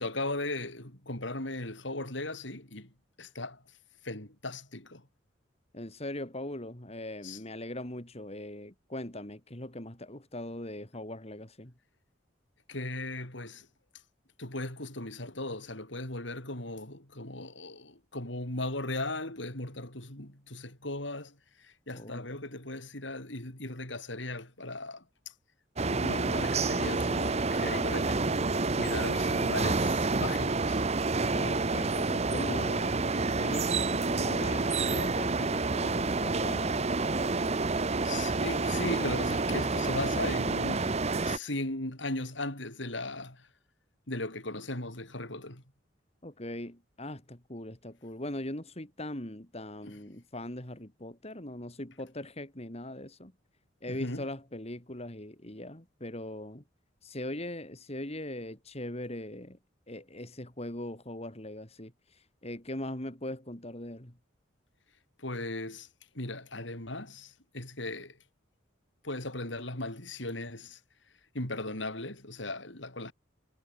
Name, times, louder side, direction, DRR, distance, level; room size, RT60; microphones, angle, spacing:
voice 1, 0.0-2.9 3.2-3.6 4.0-5.0 7.2-7.4 12.7-13.7 14.4-25.0 25.8-30.8 38.0-43.5 44.1-45.6 53.9-54.2 65.2-65.9 66.1-68.2 69.0-70.8 71.3-73.1, left 2 dB, 70° left, 6.5 m, -37 dB
voice 2, 5.7-11.7 21.9-22.3 31.3-37.8 46.2-53.3 53.8-56.6 57.0-59.6 59.9-64.2, left 1 dB, 35° left, 3.7 m, -40 dB
sound 1, 25.8-41.4, right 3 dB, 35° right, 0.9 m, -29 dB
head